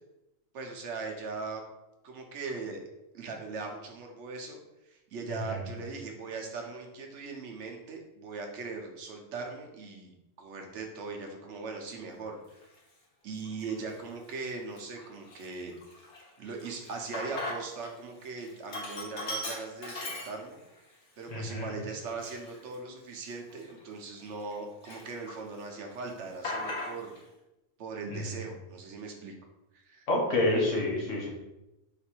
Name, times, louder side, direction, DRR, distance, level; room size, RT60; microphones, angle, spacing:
voice 1, 0.5-1.6 2.0-2.8 3.1-4.6 4.9-10.1 10.4-12.4 13.2-15.7 16.4-20.6 21.2-27.1 27.8-29.3 29.7-30.1, right 4 dB, 70° right, 2 dB, 1.0 m, -39 dB
voice 2, 5.3-5.6 21.3-21.6 28.1-28.4 30.1-31.3, left 1 dB, 85° left, -2 dB, 1.4 m, -29 dB
Sink (filling or washing), 12.6-12.8 13.4-14.0 14.4-14.5 14.8-17.9 18.2-20.8 21.2-21.3 22.0-24.5 24.8-25.6 25.9-27.2, left 2 dB, 65° left, 1.2 m, -39 dB
4.0 x 2.6 x 4.4 m, 0.94 s
omnidirectional pair, 1.3 m